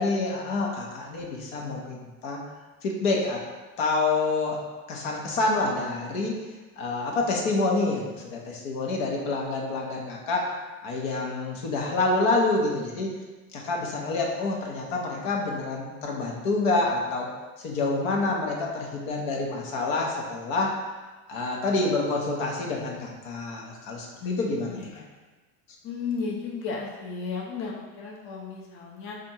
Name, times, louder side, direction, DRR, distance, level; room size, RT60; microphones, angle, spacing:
voice 1, 0.0-2.0 2.2-2.4 2.8-3.4 3.8-4.6 4.9-6.4 6.8-10.6 10.8-13.1 13.5-17.3 17.6-20.8 21.3-24.8, left 3 dB, 60° left, -1 dB, 1.0 m, -27 dB
voice 2, 24.2-25.1 25.8-29.2, left 5 dB, 30° left, -2 dB, 0.7 m, -34 dB
3.5 x 2.5 x 4.2 m, 1.2 s
hypercardioid pair, 80°, 43 cm